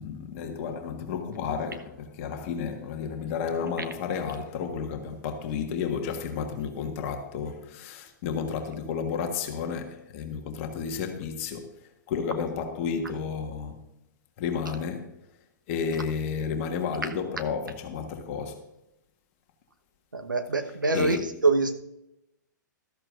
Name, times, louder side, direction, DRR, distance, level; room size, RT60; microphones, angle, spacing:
voice 1, 0.0-11.7 12.1-13.8 14.4-15.1 15.7-18.7 20.7-21.3, left 6 dB, 45° left, 1.5 m, -32 dB
voice 2, 20.1-21.7, right 3 dB, 85° right, 1.2 m, -25 dB
14.0 x 13.0 x 2.6 m
figure-of-eight pair, 110°, 10 cm